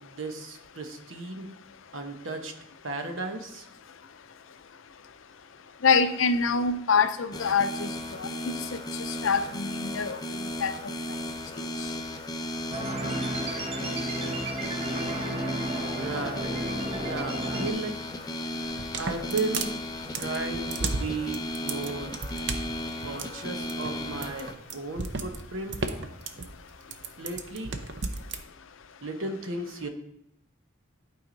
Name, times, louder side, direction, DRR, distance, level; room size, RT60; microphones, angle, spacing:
voice 1, 0.0-1.5 1.9-2.5 2.8-3.7 16.0-16.5 16.9-18.0 19.0-19.7 20.2-22.2 23.0-25.8 27.2-27.7 29.0-29.9, right 3 dB, 75° right, 5 dB, 1.1 m, -34 dB
voice 2, 5.8-7.9 8.2-8.5 9.2-10.7, left 5 dB, 75° left, 11 dB, 0.6 m, -25 dB
sound 1, 7.3-24.5, left 1 dB, 20° left, 0.5 m, -35 dB
sound 2, 12.7-17.7, right 1 dB, 30° right, 0.9 m, -33 dB
sound 3, 18.6-28.4, right 4 dB, 60° right, 0.6 m, -34 dB
11.5 x 4.8 x 3.9 m, 0.79 s
head